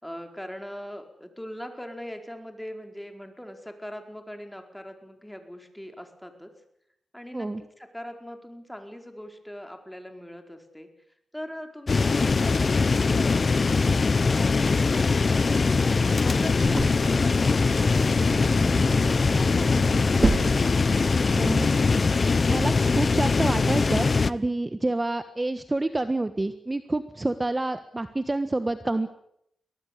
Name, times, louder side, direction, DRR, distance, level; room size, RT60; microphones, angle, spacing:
voice 1, 0.0-6.5 7.1-10.9 11.3-15.8 16.1-20.3, equal, 5° left, 5 dB, 4.7 m, -41 dB
sound 1, 11.9-24.3, left 4 dB, 50° left, 0.9 m, -22 dB
sound 2, 15.1-21.4, right 3 dB, 40° right, 4.2 m, -32 dB
voice 2, 21.3-21.7 22.5-29.1, right 2 dB, 25° right, 10 dB, 1.4 m, -28 dB
24.0 x 18.0 x 8.7 m, 0.76 s
cardioid pair, 65°, 0 cm